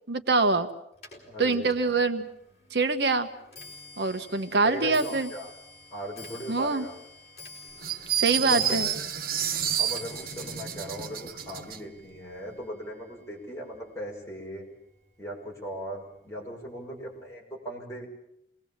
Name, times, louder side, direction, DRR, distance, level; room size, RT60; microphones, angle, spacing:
voice 1, 0.1-0.7 1.4-2.3 2.7-3.3 4.0-5.3 6.5-6.8 8.2-8.9, right 3 dB, 75° right, 8 dB, 1.3 m, -24 dB
Clock, 1.0-14.3 14.6-15.1 15.9-16.0 16.3-16.7 17.0-17.1, left 2 dB, 40° left, 5.1 m, -49 dB
voice 2, 1.2-2.0 4.5-5.5 5.9-7.0 8.4-8.9 9.8-14.7 15.2-18.1, equal, 15° left, -3 dB, 6.3 m, -38 dB
sound 1, 7.8-11.8, right 9 dB, 55° right, 0.9 m, -29 dB
27.5 x 20.0 x 7.4 m, 0.79 s
head